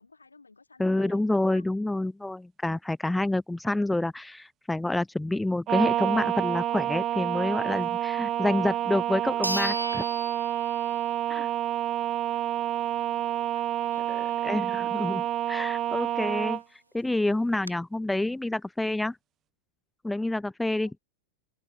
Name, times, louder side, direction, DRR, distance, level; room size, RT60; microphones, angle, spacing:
voice 1, 0.0-1.6 11.9-14.7 20.8-21.0, left 4 dB, 80° left, 7.0 m, -54 dB
voice 2, 0.8-10.0 11.3-11.5 14.4-16.6 16.9-19.2 20.0-20.9, left 2 dB, 5° left, 0.7 m, -28 dB
sound 1, 5.7-16.6, right 12 dB, 30° right, 1.1 m, -28 dB
sound 2, 8.6-8.7 9.4-11.2 11.6-11.7 16.3-16.4 16.6-16.7 17.3-17.7, equal, 90° right, 0.9 m, -35 dB
figure-of-eight pair, 90°, 0 cm